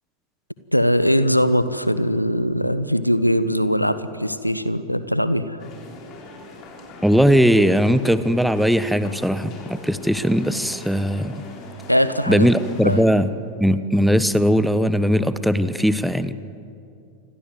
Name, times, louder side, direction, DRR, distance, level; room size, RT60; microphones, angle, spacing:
voice 1, 0.7-5.6 11.9-12.5 12.8-13.1 13.7-13.8 15.3-15.4, equal, 90° left, 14 dB, 1.2 m, -21 dB
sound 1, 5.6-13.0, left 3 dB, 35° left, 6.2 m, -41 dB
voice 2, 7.0-11.3 12.3-13.3 13.6-16.3, equal, ahead, 13 dB, 1.2 m, -19 dB
28.5 x 25.5 x 7.8 m, 2.5 s
figure-of-eight pair, 90°, 0 cm